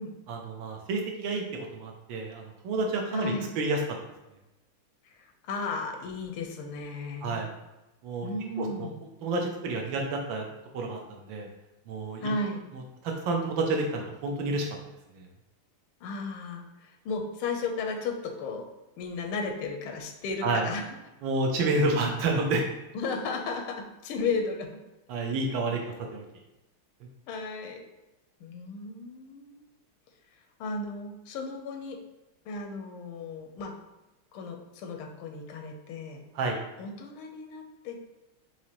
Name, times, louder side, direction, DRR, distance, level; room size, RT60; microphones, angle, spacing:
voice 1, 0.3-3.8 7.2-7.5 8.0-8.3 8.6-8.9 9.2-10.5 10.7-11.5 11.9-12.3 13.0-14.7 15.2-15.3 20.4-20.7 21.2-22.7 25.1-26.2 36.3-36.6, right 2 dB, 70° right, 1 dB, 1.3 m, -29 dB
voice 2, 3.1-3.5 5.1-7.4 8.2-9.0 12.2-12.6 16.0-18.6 19.0-20.9 21.8-22.1 22.9-24.7 25.2-25.3 27.3-27.8 28.4-29.6 30.6-32.0 32.5-33.7 34.3-36.2 36.8-38.0, left 3 dB, 90° left, 3 dB, 1.5 m, -34 dB
5.0 x 3.1 x 2.8 m, 0.98 s
omnidirectional pair, 2.4 m